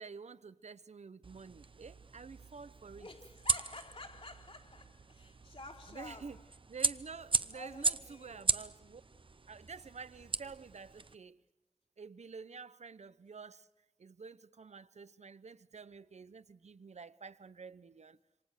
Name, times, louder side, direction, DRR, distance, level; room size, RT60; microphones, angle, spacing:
voice 1, 0.0-3.1 5.9-6.4 6.7-9.0 9.5-11.4 12.0-13.7 14.0-18.2, right 5 dB, 85° right, 0.8 m, -49 dB
sound 1, 1.2-11.1, right 3 dB, 50° right, 0.8 m, -38 dB
voice 2, 2.8-6.5 7.5-8.5, left 2 dB, 70° left, 4.0 m, -51 dB
27.5 x 25.5 x 6.6 m
wide cardioid pair, 60°, 11 cm